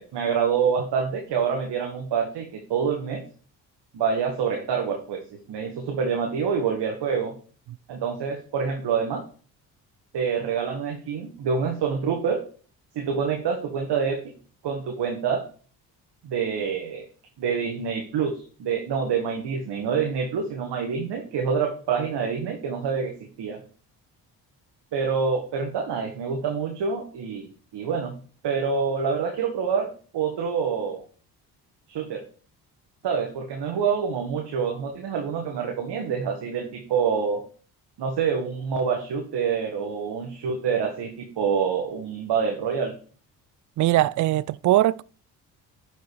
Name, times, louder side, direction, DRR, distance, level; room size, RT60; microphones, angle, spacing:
voice 1, 0.0-3.2 3.9-5.2 5.5-7.4 7.9-9.2 10.1-12.4 13.0-14.3 14.6-15.4 16.2-17.1 17.4-23.6 24.9-28.2 28.4-31.0 31.9-32.2 33.0-37.4 38.0-43.0, right 6 dB, 60° right, 1.7 m, -26 dB
voice 2, 43.8-45.0, right 15 dB, 45° right, 0.4 m, -21 dB
11.5 x 5.2 x 4.8 m
hypercardioid pair, 45°, 46 cm